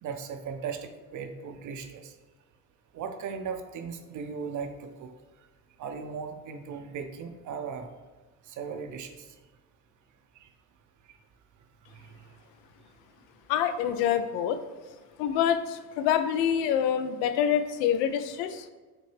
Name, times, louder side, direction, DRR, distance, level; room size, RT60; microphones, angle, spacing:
voice 1, 0.0-2.1 2.9-5.1 5.8-7.9 8.5-9.2 10.4-10.5 11.9-12.1, right 6 dB, 40° right, 6 dB, 0.6 m, -37 dB
voice 2, 13.5-14.6 15.2-18.7, left 9 dB, 70° left, 11 dB, 0.5 m, -26 dB
6.0 x 2.2 x 3.2 m, 1.3 s
supercardioid pair, 80°, 47 cm